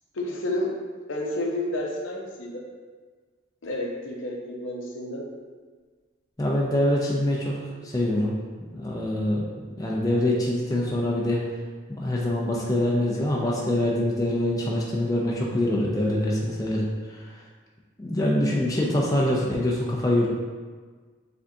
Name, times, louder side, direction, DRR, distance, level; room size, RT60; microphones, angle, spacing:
voice 1, 0.1-0.8 1.1-2.6 3.6-5.2, left 1 dB, 70° left, 0 dB, 0.7 m, -30 dB
Telephone, 4.4-5.4 7.3-8.3 10.3-11.3, right 5 dB, 45° right, 0.8 m, -50 dB
voice 2, 6.4-7.6 7.8-8.4 8.7-9.5 9.8-11.4 11.9-17.4 18.0-20.3, left 1 dB, 15° left, -4 dB, 0.4 m, -24 dB
4.9 x 3.5 x 2.7 m, 1.5 s
head